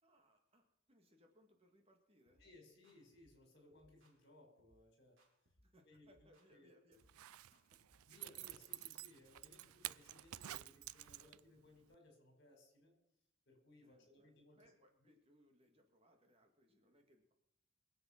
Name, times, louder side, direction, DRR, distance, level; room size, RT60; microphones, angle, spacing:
voice 1, 0.0-2.5 5.6-7.0 7.5-7.8 13.8-17.3, equal, 25° right, 4 dB, 2.1 m, -71 dB
sound 1, 2.3-2.5 2.8-3.4 3.7-4.2 4.6-4.8 5.2-5.7 6.0-6.6 6.9-7.2 7.5-11.4, right 1 dB, 60° right, 5.1 m, -74 dB
voice 2, 2.4-5.2 5.8-6.8 8.1-12.9 13.4-14.6, left 2 dB, 50° left, 3 dB, 5.1 m, -64 dB
Zipper (clothing), 7.0-11.6 11.9-12.0, right 14 dB, 90° right, 0.5 m, -50 dB
23.0 x 7.9 x 5.9 m, 0.81 s
head